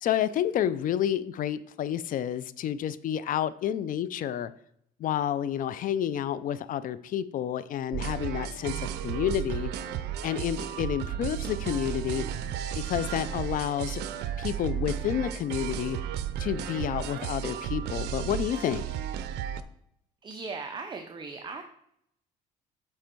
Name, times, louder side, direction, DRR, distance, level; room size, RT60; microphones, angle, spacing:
voice 1, 0.0-4.5 5.0-9.7 10.2-12.3 12.7-14.0 14.4-16.0 16.4-18.8, left 10 dB, 55° left, 16 dB, 0.4 m, -30 dB
sound 1, 7.9-19.6, right 10 dB, 80° right, 0.6 m, -33 dB
voice 2, 20.2-21.6, right 4 dB, 25° right, 5 dB, 0.6 m, -38 dB
7.5 x 4.4 x 4.5 m, 0.73 s
cardioid pair, 110°, 17 cm